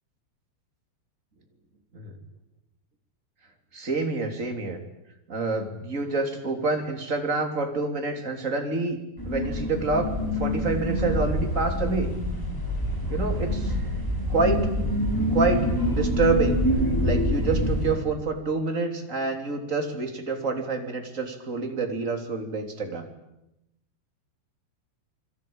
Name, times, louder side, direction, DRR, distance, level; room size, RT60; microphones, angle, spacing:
voice 1, 3.7-4.8 5.3-9.0 9.2-12.1 13.1-13.7 14.3-14.7 15.3-16.6 17.0-23.1, right 3 dB, 20° right, 5 dB, 2.6 m, -27 dB
sound 1, 9.2-17.9, equal, 5° left, 5.6 m, -26 dB
29.0 x 22.5 x 8.9 m, 0.89 s
omnidirectional pair, 5.4 m